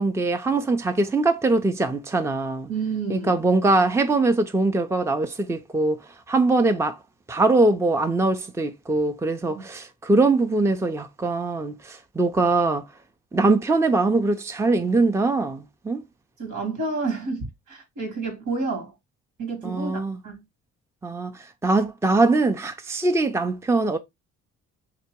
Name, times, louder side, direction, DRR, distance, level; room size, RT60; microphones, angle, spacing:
voice 1, 0.0-2.7 3.1-6.0 6.3-7.0 7.3-12.8 13.3-16.0 19.6-20.2 21.0-24.0, right 3 dB, 10° right, 0.5 m, -22 dB
voice 2, 2.7-3.4 9.5-9.6 16.4-18.9 19.4-20.4, right 4 dB, 80° right, 1.9 m, -30 dB
3.3 x 3.0 x 4.5 m
cardioid pair, 90°, 30 cm